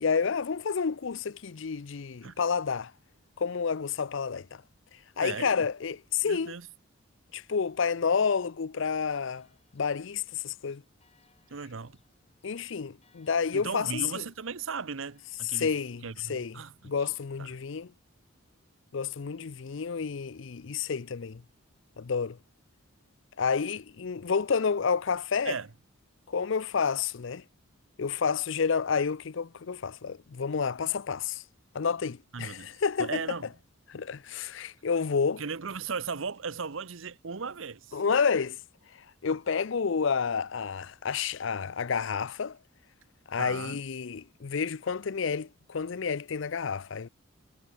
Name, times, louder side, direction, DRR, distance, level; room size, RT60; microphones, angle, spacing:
voice 1, 0.0-2.9 3.4-4.6 5.2-6.6 7.3-9.5 9.7-10.8 12.4-14.2 15.5-16.5 16.8-17.9 18.9-21.4 22.0-22.4 23.4-25.6 26.3-27.4 28.0-31.4 31.7-33.2 33.9-35.4 37.9-38.6 39.2-42.6 43.3-47.1, left 6 dB, 60° left, 0.5 m, -30 dB
voice 2, 5.2-5.7 6.2-6.7 11.5-12.0 13.5-15.7 16.0-16.9 17.4-17.5 25.4-25.7 32.3-33.5 35.4-38.0 43.4-43.8, right 5 dB, 70° right, 0.9 m, -37 dB
Church bell, 8.9-15.4, left 5 dB, 30° left, 7.9 m, -70 dB
head